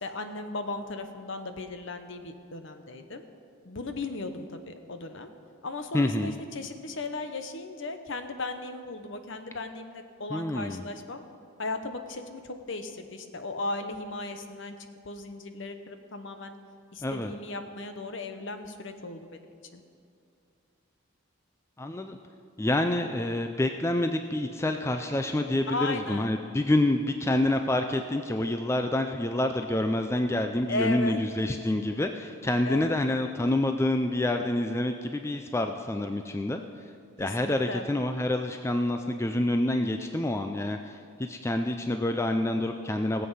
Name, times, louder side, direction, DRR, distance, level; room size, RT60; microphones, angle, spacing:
voice 1, 0.0-3.2 3.6-5.3 5.6-11.2 11.6-14.7 15.0-16.5 16.9-19.5 19.7-19.8 25.7-26.3 30.7-31.2 32.6-33.0 37.2-37.8, left 2 dB, 60° left, 8 dB, 0.9 m, -36 dB
voice 2, 5.9-6.3 10.3-10.8 17.0-17.3 21.8-22.2 22.6-36.6 37.2-43.3, left 1 dB, 10° left, 6 dB, 0.3 m, -27 dB
18.0 x 7.8 x 5.6 m, 2.5 s
head